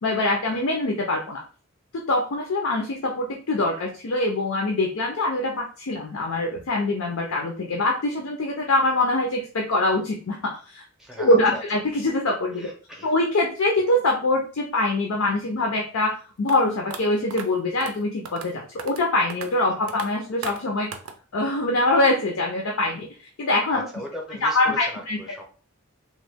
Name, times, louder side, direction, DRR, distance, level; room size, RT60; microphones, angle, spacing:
voice 1, 0.0-1.4 1.9-10.8 11.2-12.7 13.0-20.9 21.3-23.9 24.4-25.2, left 2 dB, 80° left, 1 dB, 0.5 m, -24 dB
voice 2, 11.0-11.6 12.5-13.1 19.7-19.9 23.7-25.4, equal, ahead, 0 dB, 0.6 m, -39 dB
sound 1, 16.5-16.6 16.9-17.0 17.3-17.5 17.8-18.0 18.3-18.5 18.8-19.0 19.3-19.5 19.9-20.1 20.4-20.6 20.9-21.1, right 6 dB, 75° right, 0.4 m, -35 dB
3.0 x 2.1 x 3.4 m, 0.40 s
head